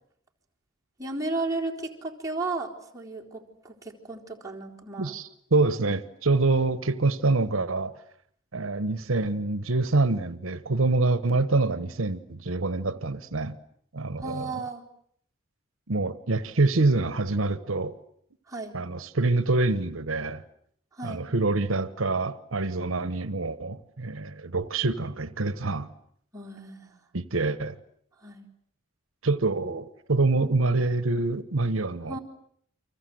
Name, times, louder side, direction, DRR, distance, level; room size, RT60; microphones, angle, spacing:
voice 1, 1.0-5.1 14.2-14.8 18.5-18.8 21.0-21.2 26.3-27.0 28.2-28.4 32.1-32.2, right 3 dB, 15° right, 4.0 m, -34 dB
voice 2, 5.0-8.0 8.5-13.6 13.9-14.6 15.9-17.9 18.7-20.4 21.0-25.9 27.1-27.8 29.2-32.2, right 3 dB, 80° right, 1.1 m, -26 dB
30.0 x 25.0 x 7.8 m
head